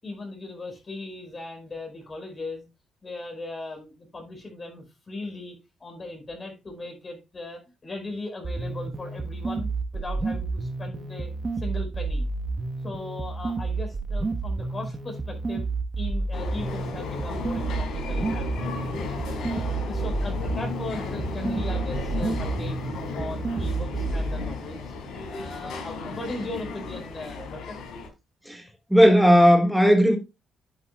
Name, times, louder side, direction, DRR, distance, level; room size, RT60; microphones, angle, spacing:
voice 1, 0.0-2.7 3.0-11.3 11.6-12.3 12.8-15.7 16.0-18.8 19.4-22.8 23.1-24.8 25.3-27.8, left 2 dB, 30° left, 5.0 m, -38 dB
sound 1, 8.4-24.4, right 3 dB, 35° right, 1.2 m, -30 dB
sound 2, 16.3-28.1, left 3 dB, 75° left, 4.5 m, -34 dB
voice 2, 28.9-30.2, equal, ahead, 1.8 m, -16 dB
11.5 x 8.3 x 2.3 m
cardioid pair, 90°, 0 cm